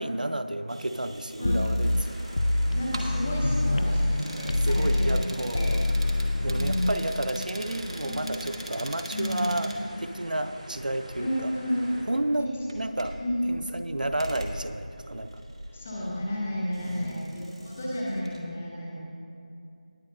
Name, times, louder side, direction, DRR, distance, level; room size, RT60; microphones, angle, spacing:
voice 1, 0.0-2.2 4.6-5.8 6.4-9.7 10.0-11.5 12.1-12.5 12.7-13.2 13.5-15.3 16.9-17.2, right 1 dB, 85° right, 10 dB, 0.6 m, -31 dB
sound 1, 0.7-18.4, right 1 dB, 40° right, 1.1 m, -42 dB
sound 2, 1.4-4.2 4.5-6.9, left 1 dB, 50° left, 0.3 m, -26 dB
sound 3, 1.8-12.1, right 1 dB, 60° right, 2.3 m, -45 dB
voice 2, 2.7-5.2 5.6-5.7 6.5-6.9 8.0-8.2 9.1-9.5 11.2-11.9 12.3-12.5 13.2-13.5 15.7-19.0, equal, 10° left, -4 dB, 0.6 m, -31 dB
19.0 x 8.4 x 2.6 m, 2.7 s
figure-of-eight pair, 175°, 4 cm